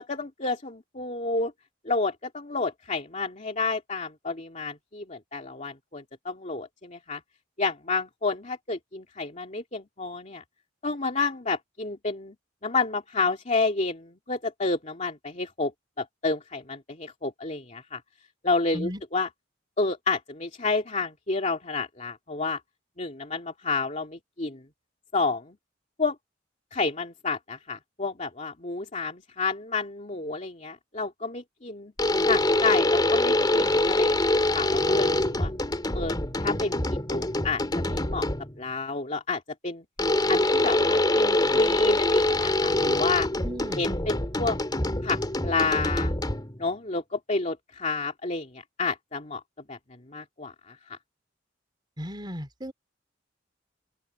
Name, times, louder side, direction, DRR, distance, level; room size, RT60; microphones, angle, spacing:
voice 1, 0.0-1.5 1.8-7.2 7.6-10.4 10.8-12.3 12.6-15.7 16.0-18.0 18.4-19.3 19.8-22.6 23.0-24.6 25.1-25.6 26.0-26.1 26.7-31.9 32.2-35.5 35.9-38.3 38.6-39.8 40.3-43.3 43.8-44.6 45.0-46.1 46.6-49.4 49.7-49.8 50.1-51.0, left 3 dB, 40° left, 2.5 m, -30 dB
sound 1, 32.0-38.6 40.0-46.6, left 1 dB, 20° left, 3.0 m, -24 dB
voice 2, 43.4-43.8 52.0-52.7, equal, 25° right, 4.2 m, -35 dB
open air
head